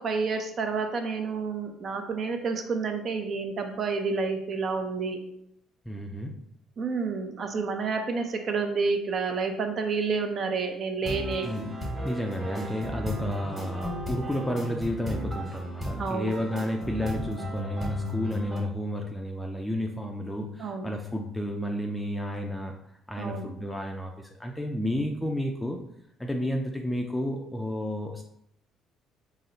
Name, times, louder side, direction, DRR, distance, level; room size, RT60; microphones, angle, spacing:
voice 1, 0.0-5.2 6.8-11.5 16.0-16.3 20.6-20.9 23.2-23.5, right 4 dB, 50° right, 5 dB, 0.6 m, -29 dB
voice 2, 5.9-6.3 11.4-11.8 12.0-22.7 23.1-25.8 26.2-28.2, equal, 10° left, 2 dB, 0.4 m, -31 dB
sound 1, 11.0-18.6, left 1 dB, 20° right, 1.4 m, -34 dB
4.0 x 2.0 x 3.8 m, 0.75 s
supercardioid pair, 85°, 0 cm